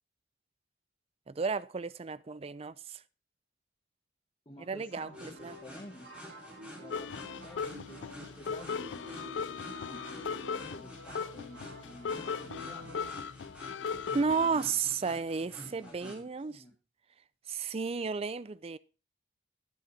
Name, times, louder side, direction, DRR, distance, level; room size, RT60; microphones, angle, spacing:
voice 1, 1.3-3.0 4.7-5.6 14.1-16.5 17.5-18.8, right 5 dB, 30° right, 0.4 m, -33 dB
voice 2, 4.4-6.2 6.8-12.9 13.9-14.8 15.6-16.7, left 1 dB, 25° left, 1.6 m, -52 dB
sound 1, 4.9-13.1, left 1 dB, 75° right, 7.9 m, -50 dB
sound 2, 5.1-16.2, equal, 5° right, 4.2 m, -50 dB
sound 3, 6.9-14.6, left 6 dB, 75° left, 0.4 m, -38 dB
11.5 x 7.9 x 4.7 m
head